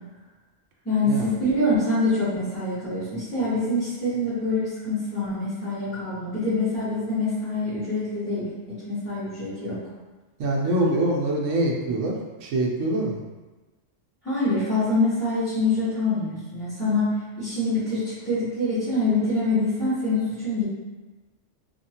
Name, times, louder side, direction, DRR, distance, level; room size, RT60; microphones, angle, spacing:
voice 1, 0.8-9.8 14.2-20.6, left 2 dB, 10° left, -16 dB, 1.1 m, -25 dB
voice 2, 10.4-12.1 12.4-13.2, right 1 dB, 85° right, -1 dB, 1.0 m, -24 dB
2.9 x 2.4 x 2.8 m, 1.2 s
omnidirectional pair, 1.2 m